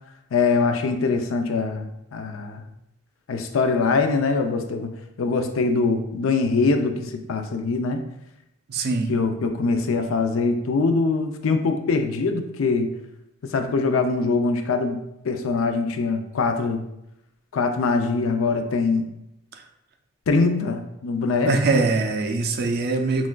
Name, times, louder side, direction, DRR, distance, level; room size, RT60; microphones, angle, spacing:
voice 1, 0.3-2.6 3.3-4.9 5.2-8.0 9.1-12.9 13.4-16.8 17.5-19.1 20.3-21.6, left 4 dB, 85° left, 6 dB, 0.4 m, -23 dB
voice 2, 8.7-9.1 21.4-23.3, right 3 dB, 50° right, 5 dB, 0.4 m, -22 dB
5.9 x 2.4 x 2.2 m, 0.84 s
head